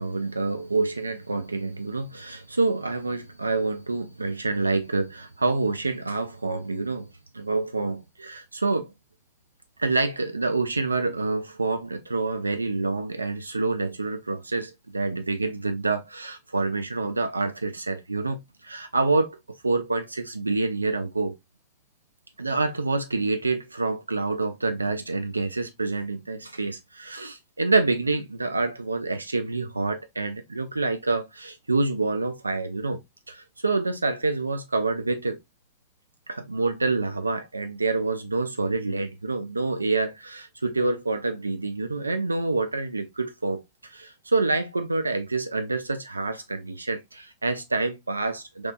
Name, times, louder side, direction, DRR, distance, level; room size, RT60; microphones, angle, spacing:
voice 1, 0.0-7.1 7.3-8.9 9.8-21.4 22.4-33.0 33.3-35.4 36.3-48.7, right 3 dB, 80° right, 0.3 m, -27 dB
3.2 x 3.0 x 2.3 m
figure-of-eight pair, 90°, 0 cm